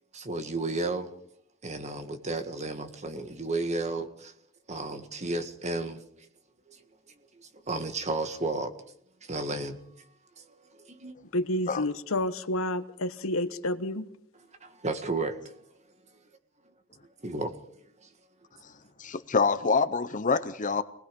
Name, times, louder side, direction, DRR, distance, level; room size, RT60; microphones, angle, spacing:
voice 1, 0.1-1.1 1.6-4.3 4.7-6.0 7.4-8.7 9.2-9.8 10.4-11.2 14.6-15.5 17.2-17.5, right 2 dB, 30° right, 1.7 m, -33 dB
voice 2, 11.3-14.1, left 1 dB, 70° left, 1.2 m, -29 dB
voice 3, 19.0-20.8, left 4 dB, 35° left, 0.7 m, -26 dB
26.0 x 20.0 x 5.3 m
head